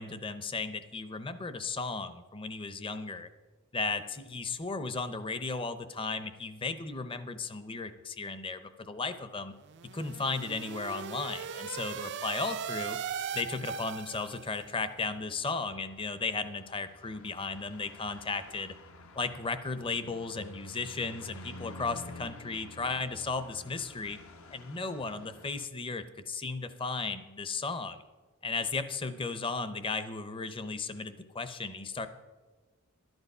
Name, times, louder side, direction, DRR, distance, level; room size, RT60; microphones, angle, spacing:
voice 1, 0.0-3.3 3.7-9.5 9.9-13.0 13.3-18.7 19.2-24.2 24.5-28.0 28.4-32.1, left 4 dB, 25° left, 11 dB, 0.6 m, -35 dB
sound 1, 9.6-14.6, right 7 dB, 50° right, 0.4 m, -39 dB
sound 2, 14.0-25.7, left 2 dB, 65° left, 0.9 m, -51 dB
12.5 x 11.0 x 5.5 m, 1.3 s
head